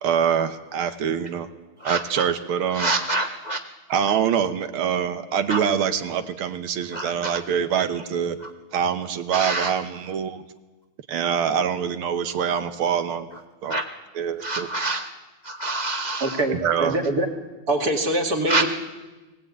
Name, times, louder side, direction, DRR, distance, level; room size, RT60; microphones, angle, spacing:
voice 1, 0.0-1.5 1.8-2.9 3.9-8.4 8.7-10.4 11.1-13.3 13.6-13.8 14.2-14.7 16.5-17.0, right 8 dB, 75° right, 9 dB, 1.9 m, -24 dB
voice 2, 1.8-2.3 2.7-3.6 5.5-5.6 6.9-7.4 9.3-9.7 13.7-13.8 14.4-15.1 15.4-16.4 18.5-18.6, right 2 dB, 45° left, 4 dB, 0.5 m, -26 dB
voice 3, 16.2-17.3 17.7-18.7, right 1 dB, 45° right, 2 dB, 2.8 m, -24 dB
20.0 x 17.5 x 8.6 m, 1.2 s
omnidirectional pair, 2.4 m